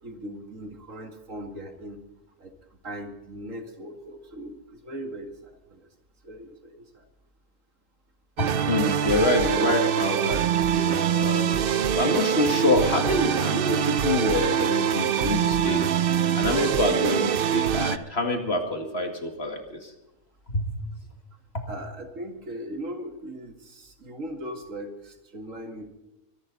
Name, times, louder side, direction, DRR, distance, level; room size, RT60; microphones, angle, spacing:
voice 1, 0.0-2.0 2.4-2.5 2.8-5.9 6.2-6.9 21.7-25.9, right 1 dB, 90° right, 4 dB, 2.6 m, -39 dB
voice 2, 8.4-11.7 12.0-19.9 20.5-20.7 21.5-21.7, left 2 dB, 55° left, 4 dB, 2.3 m, -26 dB
sound 1, 8.4-18.0, right 8 dB, 55° right, 0.7 m, -24 dB
24.0 x 12.0 x 4.0 m, 0.97 s
omnidirectional pair, 1.3 m